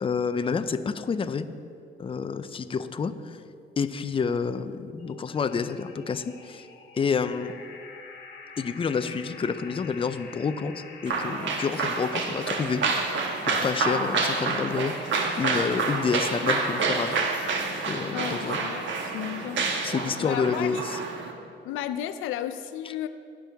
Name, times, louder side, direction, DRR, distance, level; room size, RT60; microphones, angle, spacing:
voice 1, 0.0-1.5 2.0-3.4 3.8-6.7 6.9-7.5 8.6-12.8 13.4-17.2 17.9-18.6 19.8-21.0, left 5 dB, 25° left, 11 dB, 0.5 m, -29 dB
sound 1, 5.0-19.6, left 4 dB, 60° left, 1.4 m, -47 dB
sound 2, 11.1-21.3, right 4 dB, 70° right, 1.2 m, -28 dB
voice 2, 18.1-19.6 20.2-20.8 21.6-23.1, left 11 dB, 85° left, 11 dB, 0.4 m, -33 dB
18.5 x 6.2 x 3.5 m, 2.4 s
cardioid pair, 90°, 20 cm